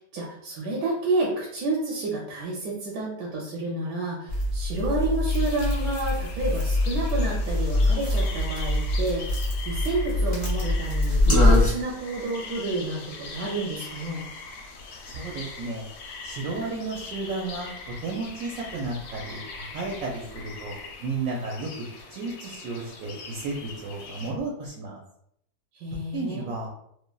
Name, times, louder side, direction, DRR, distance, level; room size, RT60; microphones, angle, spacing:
voice 1, 0.1-14.2 25.7-26.5, right 2 dB, 85° right, -4 dB, 1.2 m, -30 dB
sound 1, 4.3-11.7, left 1 dB, 20° left, 1.2 m, -23 dB
sound 2, 5.3-24.3, left 4 dB, 75° left, 1.1 m, -41 dB
voice 2, 15.1-15.9 16.2-20.7 21.0-21.7 22.1-25.0 26.1-26.7, right 3 dB, 70° right, -1 dB, 0.9 m, -33 dB
3.2 x 2.2 x 2.2 m, 0.73 s
omnidirectional pair, 1.7 m